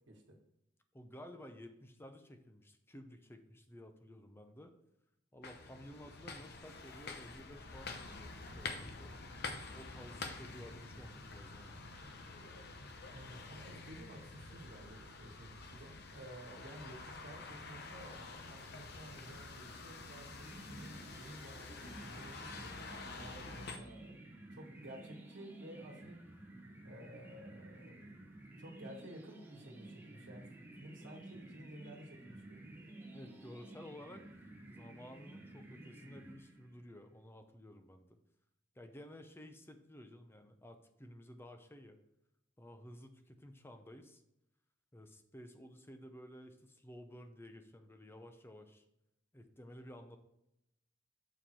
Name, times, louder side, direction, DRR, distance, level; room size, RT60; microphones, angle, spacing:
voice 1, 0.9-4.7 5.3-9.2 9.7-11.7 23.5-23.8 33.1-34.2 34.7-38.2 38.8-42.0 42.6-44.2 44.9-48.8 49.3-50.2, equal, 10° left, 7 dB, 0.7 m, -54 dB
sound 1, 5.4-23.8, left 3 dB, 60° left, 0.8 m, -48 dB
voice 2, 13.1-26.2 26.8-28.1 28.6-32.6, right 1 dB, 70° right, 0 dB, 1.4 m, -53 dB
sound 2, 20.3-36.9, right 1 dB, 10° right, 1.0 m, -53 dB
7.0 x 4.5 x 4.4 m, 0.85 s
head